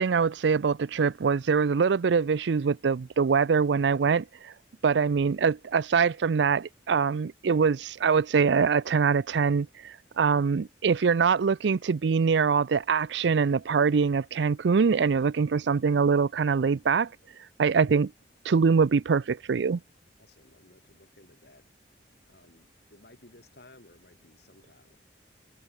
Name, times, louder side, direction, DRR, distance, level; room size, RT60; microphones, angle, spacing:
voice 1, 0.0-4.5 4.8-17.1 17.6-18.1 18.4-19.8, right 5 dB, 80° right, 0.4 m, -24 dB
voice 2, 20.2-21.7 22.3-25.0, left 2 dB, 60° left, 3.6 m, -57 dB
head